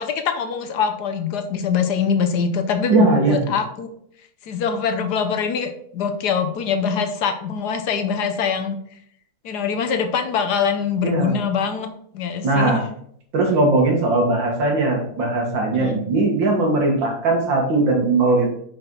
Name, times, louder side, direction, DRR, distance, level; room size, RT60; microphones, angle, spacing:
voice 1, 0.0-3.9 4.5-8.8 9.4-11.9 12.1-12.9 15.7-16.0, left 6 dB, 65° left, 7 dB, 1.3 m, -23 dB
voice 2, 2.9-3.4 11.0-11.3 12.4-12.8 13.3-18.5, right 2 dB, 85° right, 1 dB, 2.5 m, -19 dB
5.7 x 5.4 x 5.4 m, 0.67 s
omnidirectional pair, 2.0 m